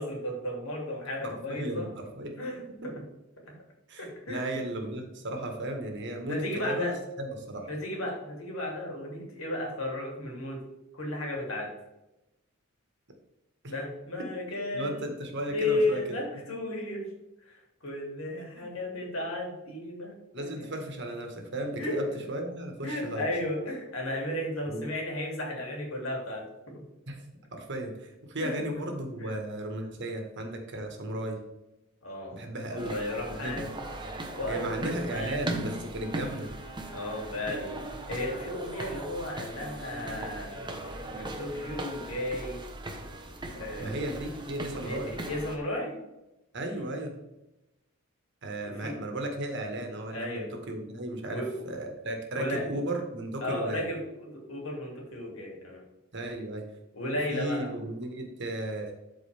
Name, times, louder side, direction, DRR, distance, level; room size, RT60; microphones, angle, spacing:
voice 1, 0.0-1.9 2.4-2.9 4.0-4.5 6.3-7.0 7.7-10.6 10.9-11.7 13.7-15.0 15.5-17.0 17.5-20.7 21.8-22.0 22.8-26.8 28.4-28.6 29.2-29.3 32.0-32.4 32.7-33.7 34.3-35.4 36.9-37.7 38.1-40.7 41.1-42.6 43.5-44.2 44.8-46.0 46.7-46.8 48.7-48.9 50.1-50.5 51.3-51.6 52.3-52.8 53.4-55.8 56.9-57.7, left 1 dB, 75° left, 0 dB, 2.8 m, -34 dB
voice 2, 1.2-2.4 3.9-7.7 13.6-13.7 14.2-14.3 14.7-16.2 18.6-18.7 20.3-23.3 24.7-24.8 27.1-27.3 27.5-31.4 32.3-32.9 33.3-33.7 34.5-36.5 43.8-45.1 46.5-47.1 48.4-53.8 56.1-56.6 57.3-58.9, right 1 dB, 60° right, 3 dB, 1.6 m, -35 dB
sound 1, 32.8-45.6, right 1 dB, 20° right, 1.0 m, -38 dB
12.5 x 4.6 x 3.5 m, 0.94 s
head